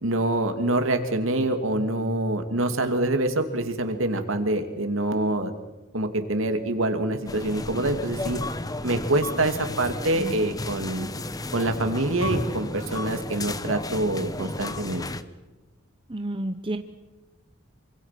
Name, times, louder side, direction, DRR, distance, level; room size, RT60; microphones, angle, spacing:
voice 1, 0.0-5.5 5.9-8.4 8.8-11.1 11.5-15.0, right 1 dB, 70° right, 6 dB, 2.6 m, -25 dB
sound 1, 7.3-15.2, left 2 dB, 15° left, 0.8 m, -33 dB
voice 2, 16.1-16.8, right 1 dB, 25° right, 7 dB, 1.0 m, -30 dB
27.0 x 25.0 x 6.0 m, 1.1 s
head